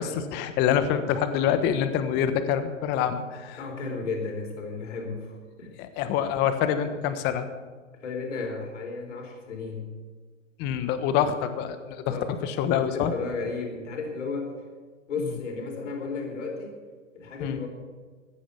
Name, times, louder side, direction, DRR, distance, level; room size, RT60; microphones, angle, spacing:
voice 1, 0.0-3.6 5.8-7.5 10.6-12.2 12.4-13.1 15.2-15.3 17.4-17.6, left 9 dB, 25° left, 10 dB, 1.2 m, -26 dB
voice 2, 3.6-5.7 8.0-9.9 12.0-12.3 12.6-14.6 15.1-16.8 17.1-17.7, left 4 dB, 70° left, 2 dB, 4.3 m, -33 dB
15.5 x 10.0 x 7.0 m, 1.4 s
hypercardioid pair, 135°, 38 cm